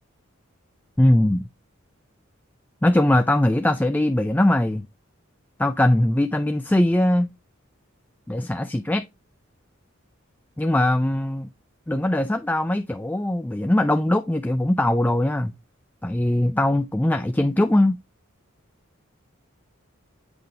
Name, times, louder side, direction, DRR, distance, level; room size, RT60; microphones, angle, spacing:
voice 1, 1.0-1.5 2.8-4.8 5.6-7.3 8.3-9.0 10.6-11.5 11.9-15.5 16.0-18.0, left 1 dB, 10° left, 0.4 m, -21 dB
8.0 x 5.2 x 3.2 m
head